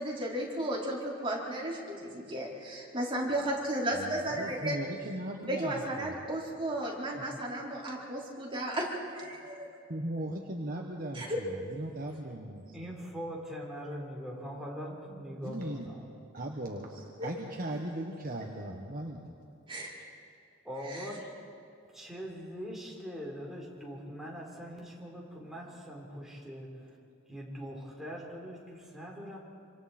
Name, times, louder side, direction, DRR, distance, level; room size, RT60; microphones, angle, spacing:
voice 1, 0.0-4.8 5.5-9.7 11.1-11.3 19.7-19.9 20.9-21.0, right 1 dB, 25° right, -4 dB, 4.7 m, -34 dB
voice 2, 3.9-6.2 9.9-12.7 15.4-15.9 16.3-19.3, right 1 dB, 45° right, 0 dB, 1.5 m, -38 dB
voice 3, 12.7-16.1 20.6-21.3 21.9-27.0 27.3-29.4, equal, ahead, -3 dB, 4.0 m, -42 dB
27.0 x 26.0 x 4.5 m, 2.5 s
head